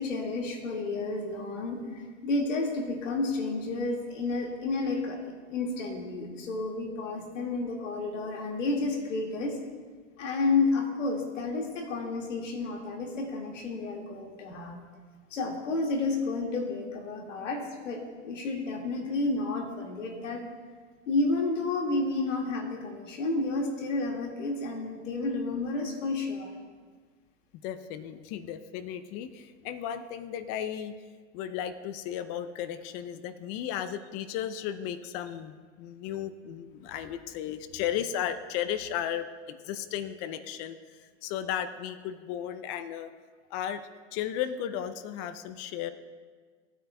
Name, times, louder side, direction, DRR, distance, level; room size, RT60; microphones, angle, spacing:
voice 1, 0.0-9.6 10.2-14.8 15.3-20.4 21.1-26.5, left 3 dB, 85° left, 1 dB, 2.1 m, -31 dB
voice 2, 27.5-30.9 31.3-43.1 43.5-45.9, left 10 dB, 40° left, 12 dB, 0.5 m, -35 dB
18.0 x 9.0 x 2.3 m, 1.5 s
hypercardioid pair, 120°, 37 cm